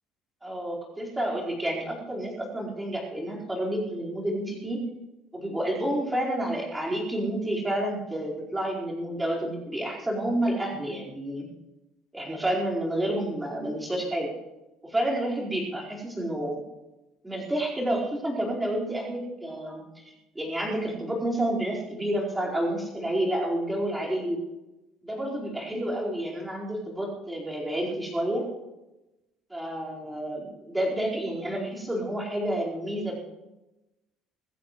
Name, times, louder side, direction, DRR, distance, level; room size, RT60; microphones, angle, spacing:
voice 1, 0.4-4.8 5.3-11.5 12.1-14.3 14.8-16.6 17.2-24.4 25.0-28.5 29.5-33.2, right 1 dB, 10° right, -5 dB, 4.7 m, -29 dB
21.5 x 15.5 x 3.2 m, 1.0 s
cardioid pair, 145°, 0 cm